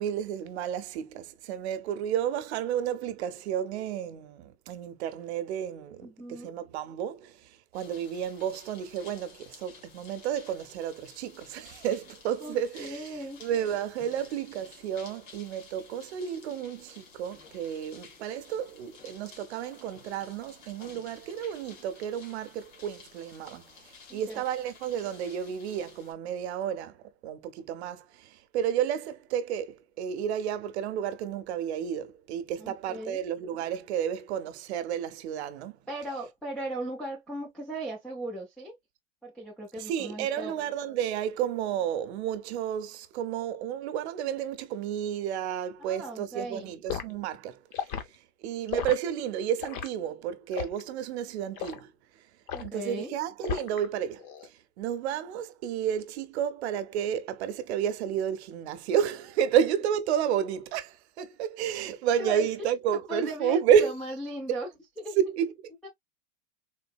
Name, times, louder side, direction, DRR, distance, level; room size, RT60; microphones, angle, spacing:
voice 1, 0.0-7.3 7.7-13.1 13.4-23.7 24.1-27.0 27.2-35.8 39.9-47.6 48.4-51.9 52.6-54.2 54.8-63.9 65.2-65.5, right 9 dB, 55° right, 0.7 m, -31 dB
voice 2, 6.0-6.5 12.4-13.4 24.1-24.4 32.6-33.2 35.9-38.8 39.2-40.5 45.8-46.7 52.5-53.1 62.2-62.5 62.9-64.7 65.0-65.2 65.8-65.9, right 1 dB, ahead, 0.3 m, -37 dB
sound 1, 7.7-26.1, left 5 dB, 75° left, 1.8 m, -53 dB
Liquid, 46.9-47.1 47.7-48.1 48.7-49.0 49.6-49.9 50.5-50.8 51.6-51.8 52.5-52.8 53.4-53.9 54.2-54.5, left 8 dB, 45° left, 0.8 m, -34 dB
3.8 x 2.6 x 2.3 m
supercardioid pair, 150°, 39 cm